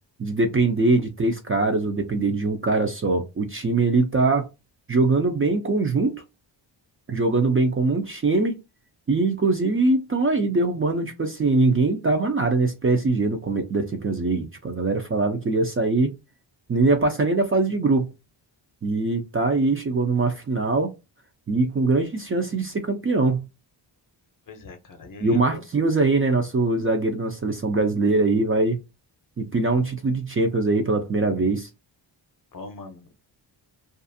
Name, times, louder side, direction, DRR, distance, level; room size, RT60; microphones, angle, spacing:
voice 1, 0.2-4.5 4.9-6.2 7.1-8.6 9.1-16.1 16.7-18.1 18.8-20.9 21.5-23.5 25.2-28.8 29.4-31.7, right 3 dB, 30° right, 0.4 m, -22 dB
voice 2, 24.5-25.6 32.5-33.1, left 3 dB, 45° left, 0.7 m, -41 dB
2.4 x 2.4 x 2.6 m
wide cardioid pair, 130°, 46 cm